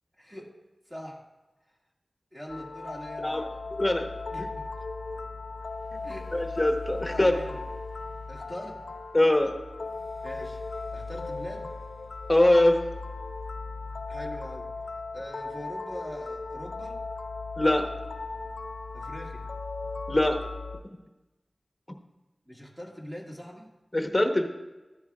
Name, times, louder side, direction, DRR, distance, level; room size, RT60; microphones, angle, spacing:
voice 1, 0.2-0.5 0.9-1.2 2.3-3.5 4.3-4.7 6.0-6.3 7.0-7.6 8.3-8.8 10.2-10.6 10.9-11.7 14.1-14.7 15.1-17.0 18.9-19.4 22.5-23.7, equal, 15° right, -2 dB, 2.0 m, -42 dB
sound 1, 2.5-20.8, left 3 dB, 75° left, 0.3 m, -37 dB
voice 2, 3.8-4.1 6.3-7.4 9.1-9.5 12.3-12.8 17.6-17.9 20.1-20.4 23.9-24.5, left 1 dB, 20° left, 3 dB, 1.1 m, -22 dB
14.0 x 10.5 x 2.4 m, 1.1 s
wide cardioid pair, 80°, 0 cm